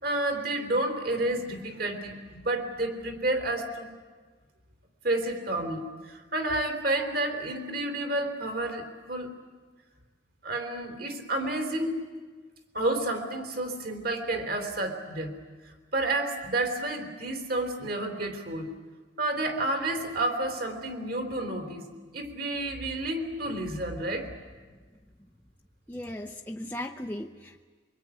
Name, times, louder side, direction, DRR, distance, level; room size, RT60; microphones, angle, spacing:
voice 1, 0.0-3.9 5.0-9.4 10.4-11.9 12.7-15.4 15.6-18.7 19.2-21.9 22.1-24.3, right 2 dB, 55° right, 5 dB, 3.4 m, -30 dB
voice 2, 25.9-27.6, left 1 dB, 10° left, 2 dB, 0.8 m, -37 dB
24.0 x 23.5 x 9.7 m, 1.4 s
head